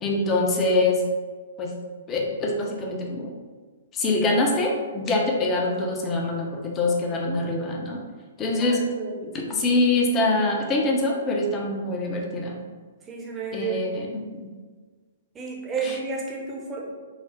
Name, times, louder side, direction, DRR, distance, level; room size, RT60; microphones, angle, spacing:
voice 1, 0.0-1.0 1.6-1.7 2.1-3.3 3.9-8.0 8.4-8.8 9.3-12.5 13.5-14.5 15.8-16.0, left 2 dB, 20° left, 0 dB, 0.6 m, -24 dB
voice 2, 8.6-9.3 13.1-14.1 15.3-16.9, right 4 dB, 15° right, -2 dB, 0.7 m, -32 dB
3.9 x 2.0 x 3.0 m, 1.5 s
figure-of-eight pair, 120°, 0 cm